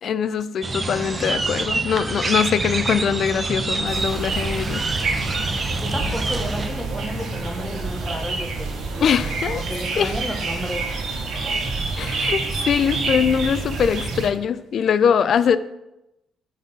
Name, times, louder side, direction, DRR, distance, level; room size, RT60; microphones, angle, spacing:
voice 1, 0.0-5.1 9.0-9.6 10.0-10.1 12.0-15.6, left 7 dB, 60° left, 0.3 m, -22 dB
sound 1, 0.6-6.7, right 3 dB, 30° right, 0.6 m, -26 dB
sound 2, 3.9-14.3, right 3 dB, 60° right, 1.2 m, -27 dB
voice 2, 5.8-10.9, equal, 5° left, 1.2 m, -32 dB
5.2 x 3.9 x 5.3 m
supercardioid pair, 75°, 0 cm